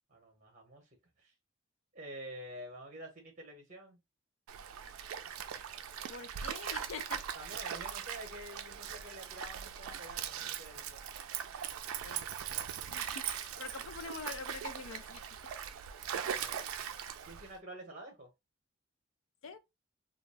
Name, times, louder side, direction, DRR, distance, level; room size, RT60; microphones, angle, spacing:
voice 1, 0.1-0.9 1.2-1.3 1.9-4.0 7.3-11.1 16.3-16.9 17.3-18.3, right 1 dB, 35° right, 0.9 m, -48 dB
Stream, 4.5-17.6, right 8 dB, 90° right, 0.3 m, -40 dB
voice 2, 6.1-7.2 7.6-7.7 12.0-12.3 12.9-15.2 19.4-19.6, left 5 dB, 70° left, 0.5 m, -45 dB
2.3 x 2.1 x 3.2 m
head